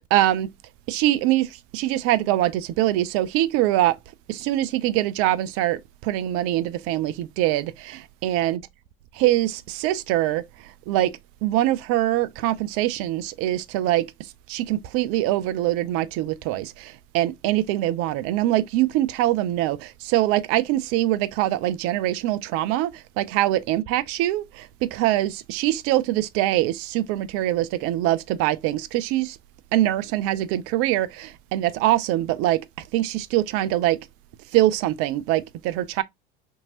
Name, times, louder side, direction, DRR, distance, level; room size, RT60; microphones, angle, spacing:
voice 1, 0.1-0.5 0.9-4.0 4.3-8.6 9.2-10.4 10.9-14.1 14.5-29.4 29.7-32.6 32.9-34.0 34.5-36.0, right 14 dB, 50° right, 0.5 m, -23 dB
2.9 x 2.6 x 2.7 m
hypercardioid pair, 75°, 30 cm